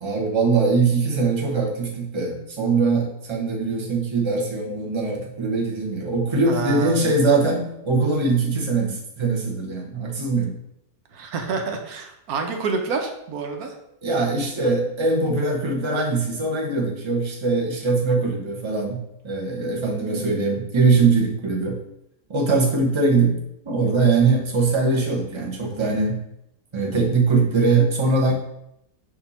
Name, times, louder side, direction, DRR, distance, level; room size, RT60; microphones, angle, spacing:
voice 1, 0.0-10.5 14.0-21.8 22.3-23.4 23.6-26.2 26.7-28.3, right 3 dB, 20° right, -1 dB, 1.0 m, -21 dB
voice 2, 6.5-7.0 11.1-13.7, right 4 dB, 90° right, 3 dB, 1.3 m, -28 dB
6.9 x 2.8 x 5.6 m, 0.80 s
omnidirectional pair, 1.5 m